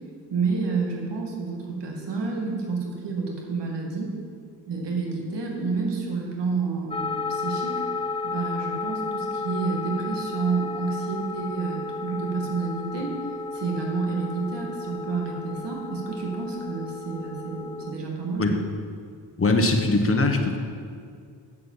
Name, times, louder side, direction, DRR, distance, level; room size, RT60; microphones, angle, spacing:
voice 1, 0.3-4.1 4.7-7.8 8.2-13.2 13.5-18.6, right 4 dB, 70° right, -1 dB, 2.2 m, -29 dB
sound 1, 6.9-17.9, left 3 dB, 15° left, 0.4 m, -33 dB
voice 2, 19.4-20.6, left 2 dB, 30° left, 4 dB, 1.3 m, -21 dB
7.8 x 7.5 x 7.3 m, 2.2 s
cardioid pair, 65°, 43 cm